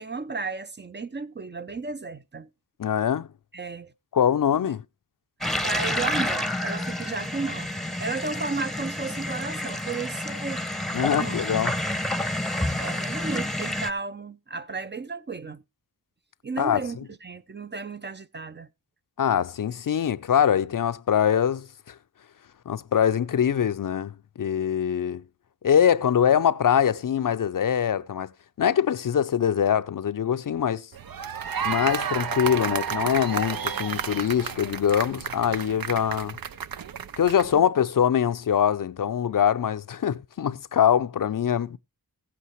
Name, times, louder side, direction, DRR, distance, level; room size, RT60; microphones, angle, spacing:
voice 1, 0.0-2.5 3.5-3.9 4.6-4.7 5.6-10.6 11.1-11.5 12.8-15.6 16.4-18.7, right 4 dB, 30° right, 0.5 m, -34 dB
voice 2, 2.8-3.3 4.1-4.8 10.9-11.7 16.6-16.8 19.2-21.9 22.7-25.2 25.6-28.3 28.6-30.9 31.6-36.4 37.2-41.8, left 8 dB, 60° left, 0.5 m, -23 dB
sound 1, 5.4-13.9, left 1 dB, ahead, 0.8 m, -29 dB
sound 2, 30.9-37.6, right 7 dB, 65° right, 0.7 m, -32 dB
15.0 x 8.4 x 3.0 m
cardioid pair, 55°, 37 cm